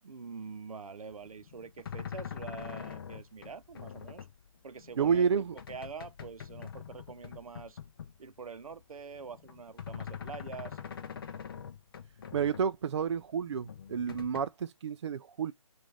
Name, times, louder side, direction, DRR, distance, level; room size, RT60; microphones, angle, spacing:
voice 1, 0.0-4.3 4.6-5.3 5.7-7.8 8.2-10.8, right 5 dB, 80° right, 0.7 m, -45 dB
sound 1, 1.1-8.4 8.6-12.7 13.1-14.4, left 8 dB, 40° left, 0.7 m, -44 dB
voice 2, 5.0-5.6 12.3-15.5, right 7 dB, 55° right, 0.4 m, -30 dB
6.3 x 2.5 x 3.3 m
hypercardioid pair, 155°, 18 cm